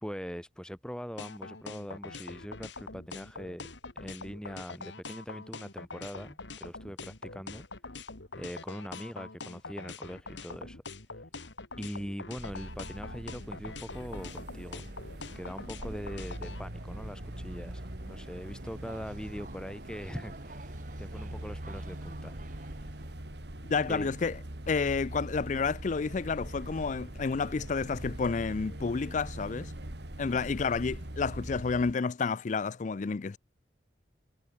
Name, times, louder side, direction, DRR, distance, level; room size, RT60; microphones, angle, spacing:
voice 1, 0.0-3.7 4.0-7.6 8.4-10.8 11.8-14.8 15.4-22.4 23.9-24.1 30.3-30.4, equal, 5° left, 2.2 m, -42 dB
sound 1, 1.2-16.6, left 3 dB, 85° left, 2.9 m, -44 dB
sound 2, 12.4-31.9, right 1 dB, 65° right, 2.7 m, -42 dB
sound 3, 13.9-23.1, right 1 dB, 45° right, 3.6 m, -50 dB
voice 2, 23.7-24.4 24.7-29.7 30.2-33.4, left 4 dB, 45° left, 0.4 m, -30 dB
head